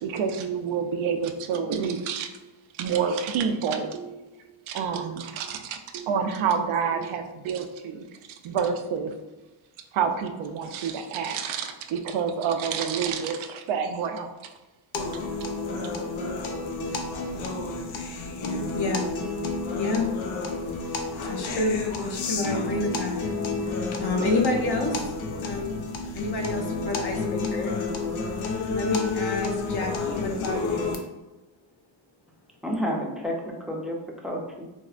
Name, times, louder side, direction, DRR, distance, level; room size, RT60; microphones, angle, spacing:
voice 1, 0.0-2.3 2.7-4.2 4.7-8.1 8.4-9.1 9.9-14.3, right 6 dB, 85° right, 6 dB, 0.5 m, -28 dB
sound 1, 14.9-31.0, left 3 dB, 90° left, 0.6 m, -30 dB
voice 2, 18.7-19.1 19.7-20.1 21.1-23.2 23.6-25.0 25.4-25.8 26.1-27.8 28.7-31.0, left 2 dB, 60° left, 1 dB, 0.8 m, -29 dB
voice 3, 32.6-34.6, equal, ahead, -1 dB, 0.5 m, -30 dB
4.2 x 2.0 x 2.4 m, 1.1 s
cardioid pair, 115°, 46 cm